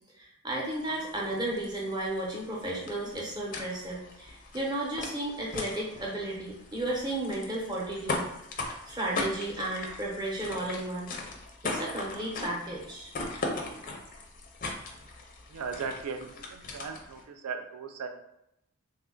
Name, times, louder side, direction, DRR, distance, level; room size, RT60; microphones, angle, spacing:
voice 1, 0.2-8.2 8.9-11.1 11.7-13.1, right 1 dB, 20° right, -4 dB, 0.7 m, -33 dB
sound 1, 0.7-17.2, left 2 dB, 35° left, 0.5 m, -39 dB
voice 2, 15.5-18.1, right 5 dB, 80° right, 5 dB, 0.4 m, -37 dB
3.2 x 2.3 x 3.7 m, 0.80 s
head